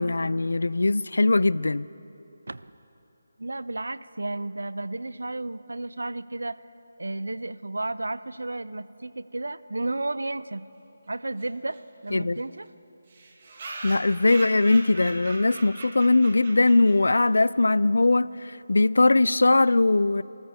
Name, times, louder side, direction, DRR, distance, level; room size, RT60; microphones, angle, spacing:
voice 1, 0.0-1.9 12.1-12.4 13.8-18.3 18.7-20.2, left 2 dB, 80° left, 0.3 m, -20 dB
voice 2, 3.4-6.6 7.0-10.6 11.1-11.8 12.0-12.7, right 2 dB, 90° right, 0.4 m, -32 dB
sound 1, 11.4-11.5 11.7-11.8 12.1-12.2 12.4-12.5 13.1-17.3, right 2 dB, 40° right, 1.9 m, -40 dB
25.0 x 13.5 x 3.6 m
figure-of-eight pair, 165°, 0 cm